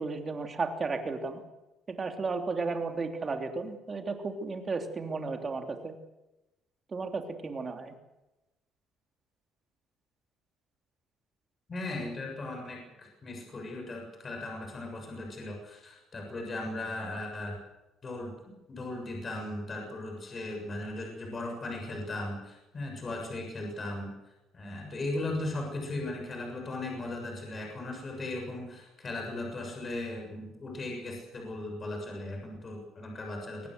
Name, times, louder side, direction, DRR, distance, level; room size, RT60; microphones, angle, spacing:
voice 1, 0.0-1.4 1.9-5.9 6.9-7.9, right 4 dB, 25° right, 5 dB, 3.0 m, -34 dB
voice 2, 11.7-17.6 18.0-18.3 18.7-24.1 24.5-33.7, left 2 dB, 30° left, 2 dB, 7.0 m, -37 dB
23.5 x 19.0 x 7.9 m, 0.99 s
cardioid pair, 140°, 0 cm